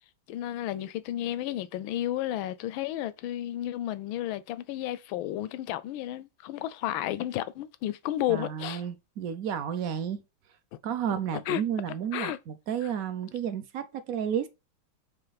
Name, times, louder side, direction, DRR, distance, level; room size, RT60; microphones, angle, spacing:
voice 1, 0.3-8.8 11.1-11.6 12.1-12.4 12.8-12.9, left 13 dB, 85° left, 1.4 m, -32 dB
voice 2, 8.3-10.2 10.8-14.5, right 8 dB, 65° right, 0.9 m, -32 dB
7.7 x 3.1 x 4.0 m
omnidirectional pair, 2.2 m